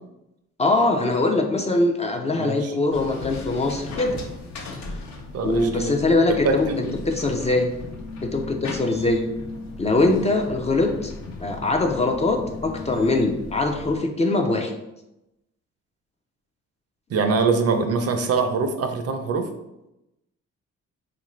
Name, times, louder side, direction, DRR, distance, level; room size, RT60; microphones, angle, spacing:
voice 1, 0.6-4.2 5.4-7.7 8.2-9.2 9.8-11.1 11.4-14.7, left 2 dB, 25° left, 3 dB, 0.4 m, -22 dB
voice 2, 2.4-2.7 5.3-5.9 6.3-7.0 17.1-19.5, right 4 dB, 55° right, 6 dB, 0.5 m, -24 dB
sound 1, 2.9-14.0, left 3 dB, 65° left, 0.7 m, -36 dB
3.5 x 2.5 x 3.0 m, 0.90 s
cardioid pair, 90°, 30 cm